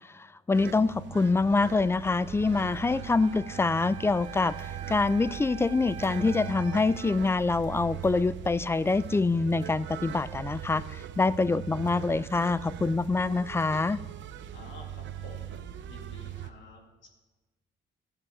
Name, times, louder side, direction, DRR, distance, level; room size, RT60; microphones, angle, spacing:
voice 1, 0.1-14.0, left 3 dB, 10° left, 18 dB, 0.3 m, -26 dB
sound 1, 0.5-16.5, right 11 dB, 70° right, 0.6 m, -41 dB
Wind instrument woodwind instrument, 2.6-7.1, right 8 dB, 35° right, 1.6 m, -45 dB
voice 2, 14.5-17.1, left 3 dB, 75° left, 2 dB, 2.3 m, -50 dB
13.5 x 8.0 x 4.9 m, 1.2 s
cardioid pair, 90°, 20 cm